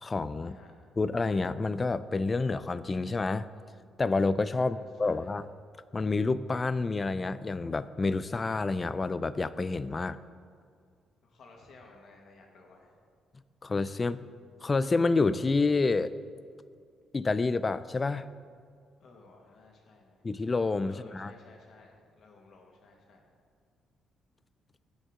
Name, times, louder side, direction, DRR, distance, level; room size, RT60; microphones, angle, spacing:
voice 1, 0.0-0.6 1.0-3.5 4.0-5.4 5.9-10.2 13.6-14.2 14.6-16.1 17.1-18.3 20.2-21.3, left 3 dB, 30° left, 15 dB, 0.4 m, -28 dB
voice 2, 4.6-5.3 11.2-13.0 19.0-20.2 20.8-23.2, left 3 dB, 60° left, 0 dB, 1.8 m, -56 dB
16.0 x 5.3 x 3.7 m, 2.2 s
cardioid pair, 90°, 0 cm